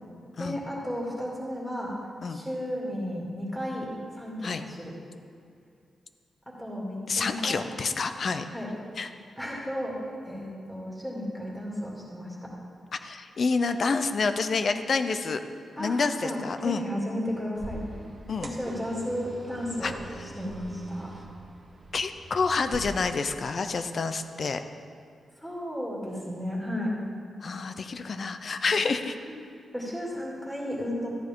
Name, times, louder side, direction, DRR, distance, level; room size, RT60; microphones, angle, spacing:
voice 1, 0.4-1.9 2.3-3.9 4.1-4.9 6.5-7.7 8.5-8.7 9.4-9.9 10.2-12.5 15.8-17.8 18.4-19.9 20.4-21.1 25.4-26.9 29.3-29.4 29.7-31.1, equal, 5° left, -5 dB, 2.5 m, -33 dB
voice 2, 7.1-8.5 9.0-9.1 13.0-15.4 15.8-16.9 18.3-18.5 19.8-19.9 21.9-24.6 27.4-29.2, left 4 dB, 50° left, 9 dB, 0.6 m, -28 dB
sound 1, 17.5-22.8, right 2 dB, 40° right, 1.4 m, -43 dB
14.0 x 10.5 x 3.7 m, 2.4 s
cardioid pair, 110°, 0 cm